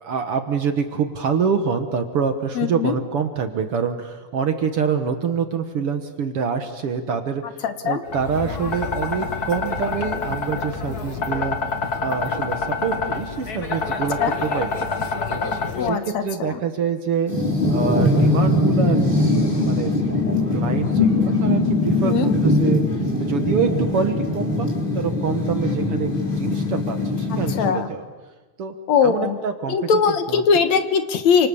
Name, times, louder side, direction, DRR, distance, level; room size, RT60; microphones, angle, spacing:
voice 1, 0.0-11.6 12.0-17.3 17.7-19.9 20.5-22.8 23.2-26.1 26.4-28.1 28.6-28.7 29.0-29.9 30.3-30.4, right 6 dB, 55° right, 7 dB, 1.9 m, -26 dB
voice 2, 2.6-2.9 7.6-8.0 14.2-14.3 15.8-16.6 22.0-22.3 27.3-27.9 28.9-29.4 29.7-31.5, left 6 dB, 65° left, 9 dB, 2.4 m, -20 dB
sound 1, 8.1-15.9, left 4 dB, 35° left, 1.8 m, -27 dB
sound 2, 17.3-27.7, left 2 dB, 15° left, 4.4 m, -21 dB
29.5 x 26.5 x 7.1 m, 1.3 s
omnidirectional pair, 3.6 m